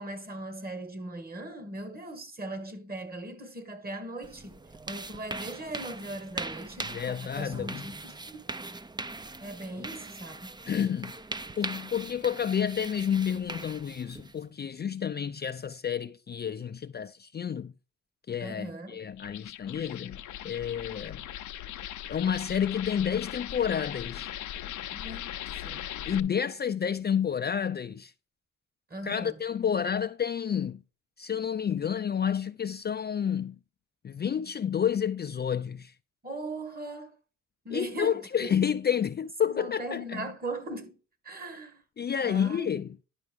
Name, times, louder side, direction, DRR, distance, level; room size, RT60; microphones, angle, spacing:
voice 1, 0.0-8.4 9.4-10.6 18.4-19.0 24.9-25.8 28.9-29.4 36.2-37.2 37.6-38.5 39.4-41.0 41.2-41.8 42.2-42.8, right 1 dB, 30° right, 2.0 m, -39 dB
sound 1, 4.2-14.4, right 3 dB, 15° right, 0.5 m, -41 dB
voice 2, 6.9-7.8 10.7-11.1 11.6-17.7 18.3-21.2 22.1-24.3 26.0-28.1 29.0-30.8 31.2-33.6 34.0-35.9 37.7-40.3 42.0-43.0, left 8 dB, 35° left, 0.4 m, -30 dB
sound 2, 19.1-26.2, left 12 dB, 75° left, 0.6 m, -39 dB
10.5 x 5.7 x 3.5 m
cardioid pair, 95°, 30 cm